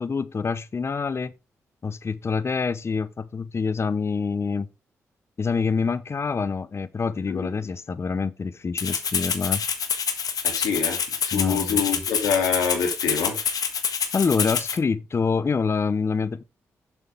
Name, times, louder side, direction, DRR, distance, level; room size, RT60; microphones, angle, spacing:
voice 1, 0.0-1.3 1.8-4.7 5.4-9.6 11.3-11.8 14.1-16.4, left 5 dB, 40° left, 0.8 m, -26 dB
Rattle (instrument), 8.8-14.8, left 7 dB, 70° left, 1.4 m, -27 dB
voice 2, 10.4-13.4, left 6 dB, 90° left, 2.8 m, -26 dB
8.0 x 6.9 x 3.5 m
supercardioid pair, 50°, 7 cm